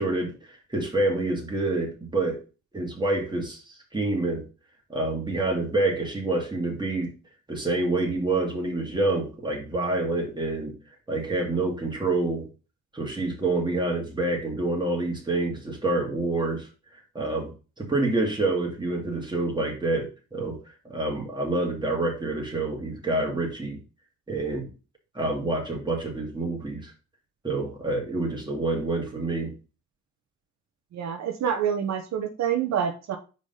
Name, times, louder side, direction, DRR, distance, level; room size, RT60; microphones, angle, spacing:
voice 1, 0.0-2.4 2.7-3.6 3.9-4.4 4.9-7.1 7.5-10.7 11.1-12.5 12.9-16.7 17.1-17.5 17.8-20.6 20.8-23.8 24.3-24.7 25.1-26.9 27.4-29.5, right 2 dB, 15° right, 0 dB, 2.5 m, -27 dB
voice 2, 30.9-33.2, right 8 dB, 65° right, 5 dB, 1.0 m, -27 dB
4.9 x 4.1 x 5.5 m, 0.32 s
cardioid pair, 90°, 30 cm